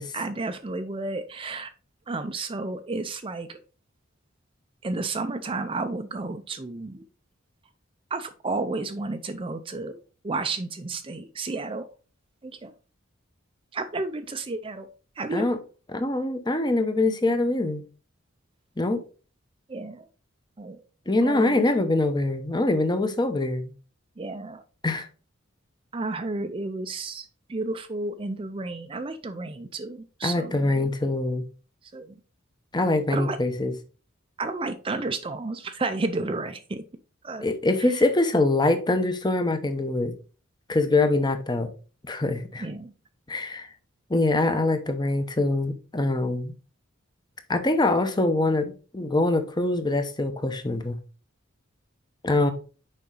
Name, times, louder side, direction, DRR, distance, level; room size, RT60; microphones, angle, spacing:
voice 1, 0.0-1.7 2.1-3.6 4.8-7.1 8.1-11.9 12.4-12.7 13.7-14.9 15.2-15.5 19.7-20.1 20.6-20.8 21.2-21.6 24.2-24.6 25.9-30.8 31.9-32.2 33.1-33.4 34.4-36.8 37.2-37.5 37.8-38.0 42.6-42.9, right 3 dB, 25° right, 0.5 m, -32 dB
voice 2, 15.9-17.8 18.8-19.0 21.1-23.7 24.8-25.1 30.2-31.4 32.7-33.7 37.4-40.1 40.7-41.7 42.1-42.7 43.3-43.7 44.1-46.5 47.5-51.0 52.2-52.5, left 2 dB, 20° left, 0.8 m, -24 dB
6.8 x 5.1 x 3.8 m
head